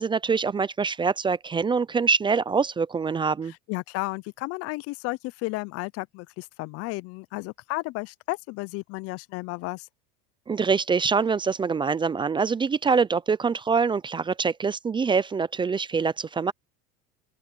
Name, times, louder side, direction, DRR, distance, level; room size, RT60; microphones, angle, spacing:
voice 1, 0.0-3.5 10.5-16.5, right 5 dB, 15° right, 0.5 m, -24 dB
voice 2, 3.5-9.9, left 23 dB, 50° left, 0.6 m, -33 dB
open air
supercardioid pair, 120°, 31 cm